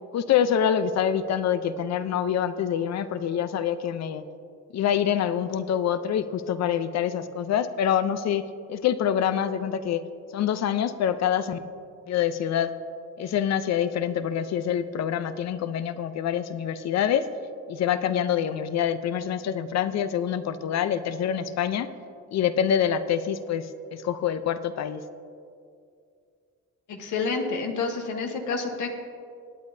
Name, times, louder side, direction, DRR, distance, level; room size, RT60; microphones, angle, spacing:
voice 1, 0.1-4.2 4.7-8.4 8.7-10.0 10.3-11.6 12.1-12.7 13.2-17.3 17.7-21.9 22.3-25.0, left 9 dB, 60° left, 12 dB, 0.6 m, -26 dB
voice 2, 26.9-28.9, left 4 dB, 75° left, 4 dB, 1.2 m, -29 dB
19.0 x 8.7 x 2.7 m, 2.4 s
cardioid pair, 90°, 30 cm